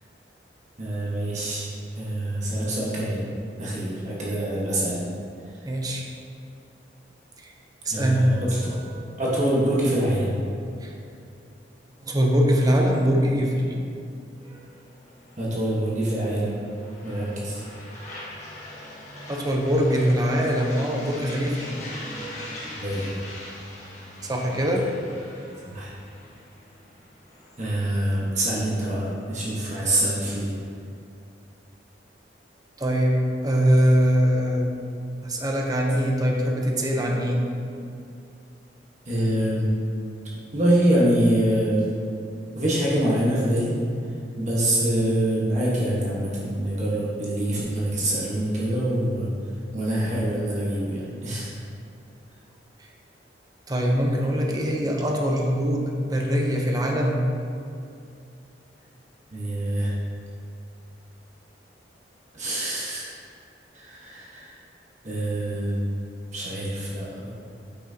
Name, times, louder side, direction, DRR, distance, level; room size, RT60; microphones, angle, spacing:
voice 1, 0.8-1.7 1.9-3.2 3.6-5.0 7.9-8.8 9.2-10.3 15.4-16.5 17.0-17.6 22.8-23.1 25.7-25.9 27.6-30.5 39.0-39.8 40.5-41.8 42.5-43.7 44.3-49.3 49.7-51.5 59.3-59.9 62.3-63.1 63.7-64.6 65.0-65.8 66.3-67.3, right 1 dB, 40° right, -7 dB, 1.3 m, -25 dB
voice 2, 5.7-6.1 7.4-7.5 7.8-9.0 10.8-10.9 12.0-13.6 14.4-14.6 19.3-22.5 24.2-25.7 32.8-34.7 35.2-37.4 52.8-52.9 53.7-57.3, equal, 20° right, 0 dB, 0.7 m, -23 dB
sound 1, 14.4-29.2, left 1 dB, 40° left, 1.6 m, -42 dB
8.5 x 5.9 x 2.8 m, 2.5 s
head